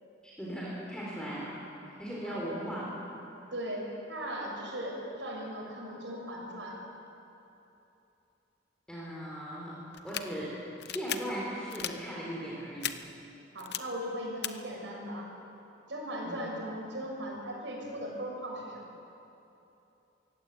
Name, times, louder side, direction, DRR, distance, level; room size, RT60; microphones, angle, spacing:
voice 1, 0.2-1.5 2.0-3.0 8.9-9.8 10.0-13.0 16.2-16.4, equal, 5° left, -6 dB, 3.9 m, -38 dB
voice 2, 2.2-2.6 3.5-6.8 13.5-15.3 15.9-18.9, equal, 85° right, -1 dB, 6.2 m, -38 dB
sound 1, 9.9-10.2 10.8-11.2 11.7-11.9 12.8-12.9 13.6-13.8 14.4-14.5, left 11 dB, 65° left, 0.9 m, -34 dB
23.5 x 16.5 x 8.6 m, 2.9 s
head